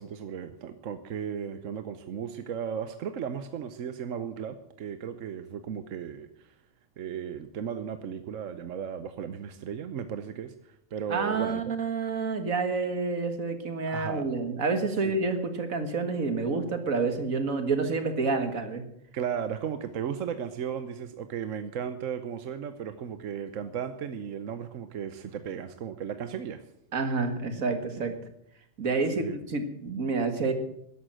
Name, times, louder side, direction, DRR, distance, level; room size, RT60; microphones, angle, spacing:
voice 1, 0.0-6.5 7.0-11.6 13.9-14.3 15.0-15.1 19.1-26.6 29.1-29.4, right 8 dB, 70° right, 10 dB, 1.2 m, -35 dB
voice 2, 11.1-18.8 26.9-28.1 28.8-30.5, right 4 dB, 90° right, 7 dB, 2.2 m, -28 dB
13.5 x 11.0 x 7.6 m, 0.75 s
omnidirectional pair, 1.4 m